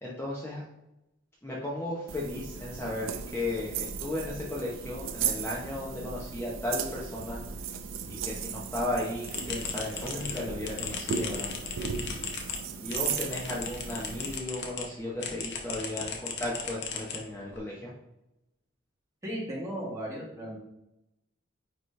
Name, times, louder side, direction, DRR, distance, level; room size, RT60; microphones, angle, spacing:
voice 1, 0.0-0.6 1.4-7.4 8.1-11.5 12.8-17.9, left 1 dB, 10° left, -5 dB, 0.9 m, -35 dB
sound 1, 2.1-14.4, right 6 dB, 70° right, 0.5 m, -36 dB
sound 2, 9.2-14.9 15.2-17.6, left 5 dB, 55° left, 0.9 m, -37 dB
voice 2, 19.2-20.6, equal, 15° right, -4 dB, 1.7 m, -36 dB
9.3 x 3.2 x 3.3 m, 0.89 s
head